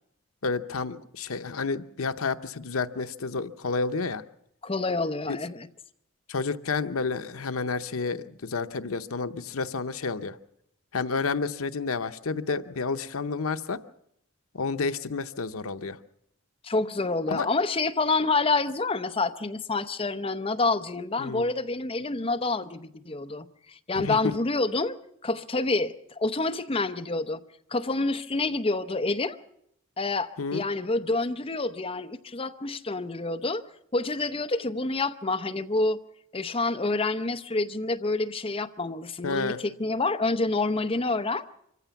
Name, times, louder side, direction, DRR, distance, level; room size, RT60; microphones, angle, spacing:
voice 1, 0.4-4.2 5.3-5.4 6.3-10.4 10.9-13.8 14.5-16.0 17.3-17.5 21.2-21.5 24.0-24.2 30.4-30.6 39.2-39.6, left 4 dB, 85° left, 0.8 m, -30 dB
voice 2, 4.6-5.7 16.6-25.0 25.2-27.4 27.7-29.4 30.0-33.6 33.9-36.0 36.3-41.5, left 3 dB, 25° left, 0.7 m, -28 dB
25.0 x 15.0 x 7.0 m
head